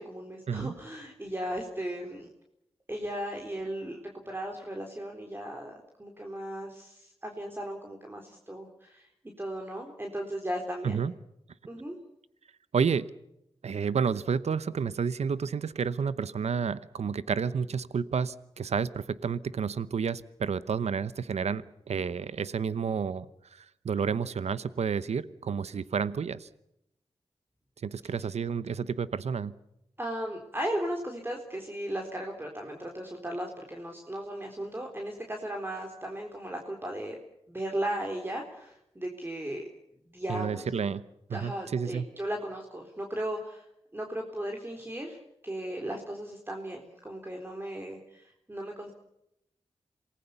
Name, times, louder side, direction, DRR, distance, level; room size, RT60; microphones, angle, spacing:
voice 1, 0.0-2.3 2.9-4.0 4.3-9.1 9.4-11.1 11.7-12.0 30.0-37.2 37.5-39.6 40.1-40.7 41.3-43.6 43.9-45.2 45.4-48.9, right 1 dB, 20° right, 2 dB, 4.0 m, -36 dB
voice 2, 12.7-13.0 13.6-23.3 23.5-26.5 27.8-29.5 40.3-41.0 41.3-42.0, right 6 dB, 85° right, 15 dB, 0.9 m, -30 dB
27.5 x 20.0 x 6.9 m, 0.82 s
cardioid pair, 65°, 11 cm